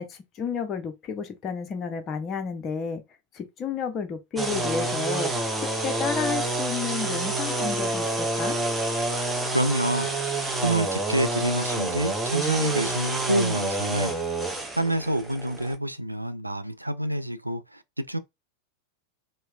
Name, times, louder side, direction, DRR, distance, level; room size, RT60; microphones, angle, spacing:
voice 1, 0.0-3.0 3.3-5.3 5.6-8.6, left 6 dB, 30° left, 0.7 m, -31 dB
sound 1, 4.4-15.7, right 2 dB, 10° right, 0.7 m, -28 dB
voice 2, 9.5-10.3 10.6-14.3 14.8-18.2, right 1 dB, 85° right, 0.3 m, -27 dB
4.3 x 2.1 x 2.3 m
figure-of-eight pair, 90°, 0 cm